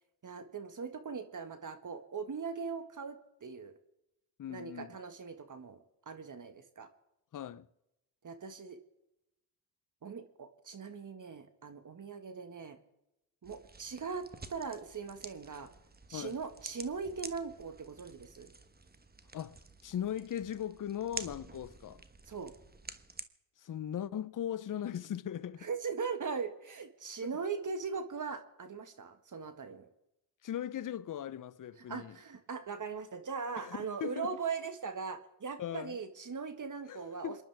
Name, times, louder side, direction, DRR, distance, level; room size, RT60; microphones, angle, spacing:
voice 1, 0.2-3.7 4.5-5.8 6.0-6.9 8.2-8.8 10.0-12.8 13.4-15.7 16.1-18.5 22.3-22.5 25.6-29.9 31.9-37.4, right 5 dB, 40° right, 1.7 m, -40 dB
voice 2, 4.4-5.0 7.3-7.7 16.1-16.4 19.3-19.6 19.8-22.0 23.6-25.7 27.2-27.3 30.4-32.2 33.6-34.3 35.6-36.0 36.9-37.4, left 10 dB, 40° left, 0.8 m, -39 dB
sound 1, 13.4-23.2, right 3 dB, 20° right, 1.3 m, -49 dB
28.0 x 11.0 x 3.5 m
hypercardioid pair, 50°, 47 cm